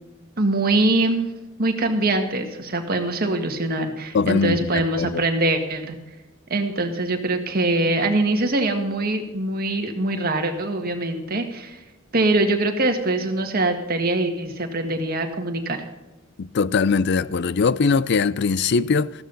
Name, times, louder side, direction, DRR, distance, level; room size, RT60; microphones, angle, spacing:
voice 1, 0.4-1.3 1.6-6.0 6.5-11.8 12.1-15.8, right 2 dB, 45° right, 1.8 m, -23 dB
voice 2, 4.1-5.2 16.4-19.1, left 5 dB, 55° left, 0.4 m, -21 dB
14.5 x 13.0 x 4.0 m
head